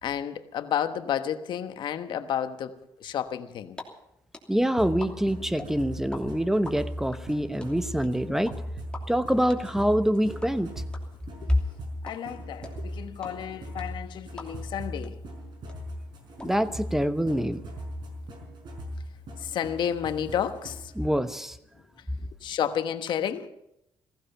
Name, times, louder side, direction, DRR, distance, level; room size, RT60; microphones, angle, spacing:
voice 1, 0.0-2.7 3.0-3.8 11.4-11.5 12.0-15.2 19.4-20.9 22.4-23.5, left 9 dB, 65° left, 9 dB, 1.2 m, -31 dB
sound 1, 3.8-3.9 4.1-6.2 6.5-14.8 15.0-15.1 15.4-16.4, left 3 dB, 10° left, 3.0 m, -43 dB
voice 2, 4.5-8.5 9.1-10.7 16.4-17.6 21.0-21.6, equal, 5° right, 11 dB, 1.0 m, -25 dB
sound 2, 4.8-21.0, equal, 65° right, 5.0 m, -39 dB
15.5 x 15.5 x 5.8 m, 0.82 s
cardioid pair, 85°, 8 cm